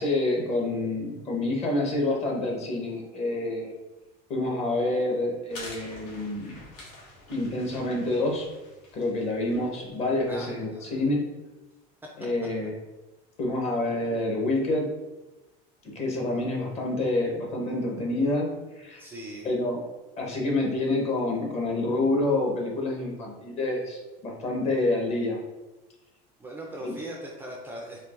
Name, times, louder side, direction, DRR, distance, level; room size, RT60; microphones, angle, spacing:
voice 1, 0.0-3.7 4.3-6.6 7.3-8.5 8.9-11.2 12.2-12.7 13.4-14.9 15.9-18.5 18.8-19.0 19.4-19.8 20.2-25.4 26.8-26.9, left 2 dB, 35° left, -1 dB, 0.8 m, -27 dB
sound 1, 5.5-10.4, left 2 dB, 85° left, 1.4 m, -47 dB
voice 2, 10.3-11.0 16.4-16.5 19.0-19.5 26.4-28.0, right 1 dB, 10° right, -2 dB, 0.3 m, -40 dB
4.5 x 2.8 x 2.4 m, 1.1 s
cardioid pair, 145°, 20 cm